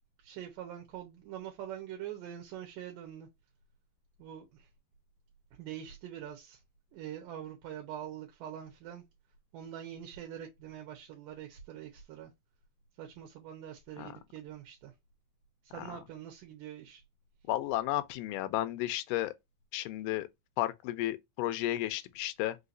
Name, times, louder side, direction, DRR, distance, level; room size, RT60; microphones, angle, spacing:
voice 1, 0.2-3.3 4.2-4.7 5.6-6.6 6.9-9.0 9.5-12.3 13.0-14.9 15.7-17.0, right 10 dB, 75° right, 2.3 m, -44 dB
voice 2, 17.5-19.3 19.7-20.3 20.6-22.6, left 14 dB, 80° left, 2.0 m, -33 dB
5.6 x 2.8 x 2.6 m
omnidirectional pair, 4.2 m